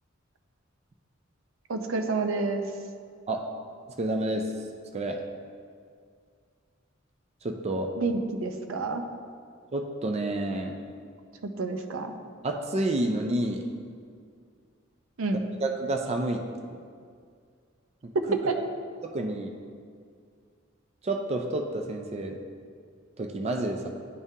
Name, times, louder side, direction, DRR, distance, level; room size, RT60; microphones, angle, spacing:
voice 1, 1.7-2.7 8.0-9.0 11.4-12.1 15.2-15.4 18.1-18.5, right 3 dB, 85° right, 5 dB, 0.5 m, -28 dB
voice 2, 4.0-4.5 4.9-5.2 7.4-7.9 9.7-10.8 12.4-13.7 15.6-16.4 18.0-18.1 19.0-19.5 21.0-22.4 23.2-23.9, right 2 dB, 30° right, 3 dB, 0.4 m, -29 dB
10.5 x 3.6 x 2.7 m, 2.2 s
head